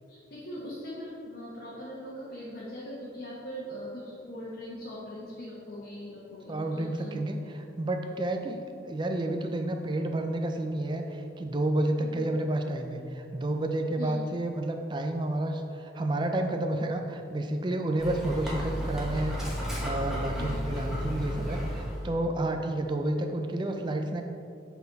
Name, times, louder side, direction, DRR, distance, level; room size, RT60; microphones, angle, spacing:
voice 1, 0.1-7.2 12.0-12.2 14.0-14.2 20.4-20.6, equal, 55° left, -8 dB, 1.2 m, -41 dB
voice 2, 6.5-19.4 19.8-24.2, right 1 dB, 25° right, 4 dB, 0.4 m, -30 dB
Dog, 18.0-22.2, equal, ahead, 1.1 m, -33 dB
8.0 x 4.1 x 4.0 m, 2.6 s
head